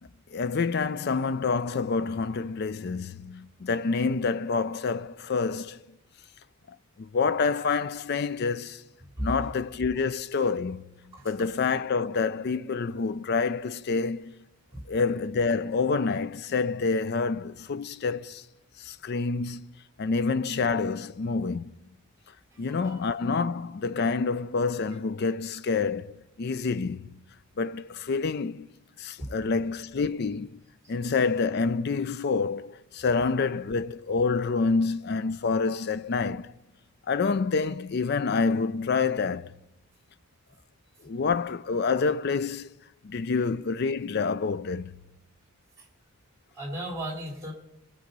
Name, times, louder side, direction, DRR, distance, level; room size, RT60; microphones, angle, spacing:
voice 1, 0.3-5.8 7.0-8.8 9.2-10.8 11.2-14.4 14.9-18.4 18.8-21.7 22.6-27.2 27.6-28.7 29.0-30.6 30.9-36.5 37.1-39.5 41.0-42.7 43.0-44.9, left 4 dB, 45° left, 0.4 m, -27 dB
voice 2, 9.2-9.5 11.1-11.5 14.7-14.8 22.5-23.0 29.2-29.3 30.8-30.9 46.5-47.5, right 1 dB, 15° right, 3.1 m, -36 dB
22.5 x 7.6 x 5.4 m
head